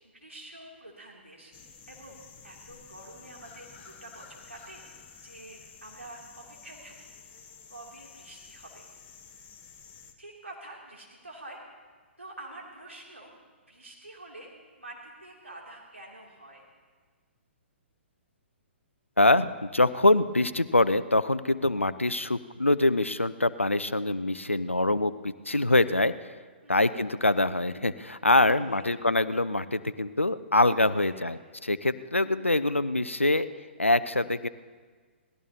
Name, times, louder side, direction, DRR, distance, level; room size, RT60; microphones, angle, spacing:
voice 1, 0.1-6.2 6.5-7.1 7.7-8.9 10.2-11.6 12.2-13.3 13.7-14.5 14.8-16.6 26.6-26.8 28.6-28.8 31.0-31.3, right 2 dB, 85° right, -3 dB, 2.8 m, -47 dB
sound 1, 1.5-10.1, left 6 dB, 25° left, 1.3 m, -51 dB
voice 2, 19.2-26.4 26.7-33.5 33.8-34.5, left 2 dB, 90° left, 14 dB, 0.6 m, -24 dB
27.5 x 18.5 x 2.9 m, 1.5 s
figure-of-eight pair, 125°, 7 cm